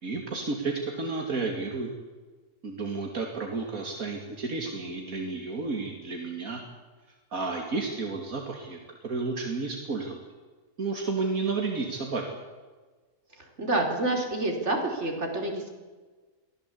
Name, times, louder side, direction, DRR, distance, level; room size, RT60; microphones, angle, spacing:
voice 1, 0.0-1.9 2.6-6.6 7.3-10.2 10.8-12.2, right 3 dB, 75° right, 2 dB, 2.9 m, -31 dB
voice 2, 13.6-15.7, right 2 dB, 55° right, 2 dB, 4.5 m, -28 dB
23.5 x 16.0 x 8.5 m, 1.4 s
omnidirectional pair, 1.5 m